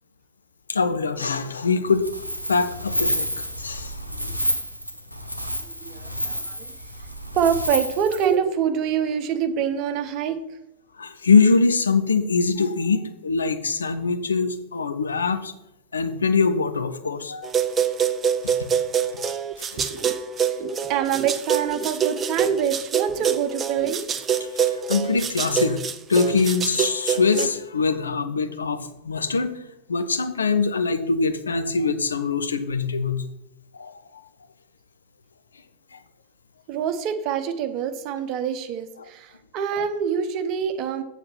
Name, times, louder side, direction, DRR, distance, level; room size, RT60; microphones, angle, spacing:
voice 1, 0.7-2.1 2.5-3.9 11.0-15.5 15.9-17.5 19.6-20.1 24.5-25.8 26.1-29.5 29.9-33.2 33.7-33.9 35.9-36.0, left 4 dB, 75° left, 9 dB, 0.8 m, -23 dB
Wind, 1.9-8.3, equal, 90° right, 0.8 m, -29 dB
voice 2, 5.8-6.7 7.3-10.4 19.8-24.0 36.7-41.0, right 8 dB, 40° right, 9 dB, 1.0 m, -26 dB
sound 1, 17.4-27.5, right 8 dB, 25° right, 0.6 m, -25 dB
7.6 x 7.1 x 6.0 m, 0.86 s
figure-of-eight pair, 90°, 0 cm